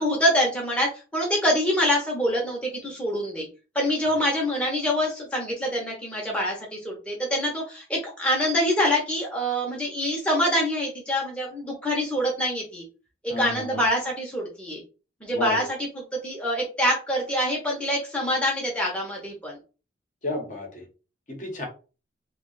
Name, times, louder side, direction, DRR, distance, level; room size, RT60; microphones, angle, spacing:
voice 1, 0.0-3.5 3.7-12.8 13.2-14.8 15.2-15.6 16.0-19.6, equal, 5° left, -2 dB, 0.8 m, -25 dB
voice 2, 13.3-13.8 15.3-15.7 20.2-20.9 21.3-21.6, left 2 dB, 40° left, 0 dB, 0.9 m, -31 dB
2.9 x 2.3 x 3.9 m, 0.34 s
head